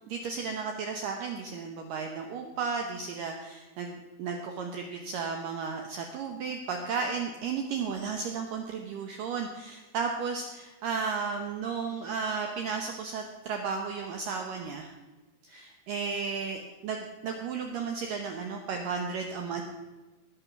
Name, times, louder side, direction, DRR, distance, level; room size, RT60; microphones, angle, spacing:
voice 1, 0.0-14.9 15.4-17.0 17.2-19.6, right 5 dB, 85° right, 3 dB, 1.9 m, -34 dB
20.0 x 7.1 x 5.9 m, 1.2 s
omnidirectional pair, 5.3 m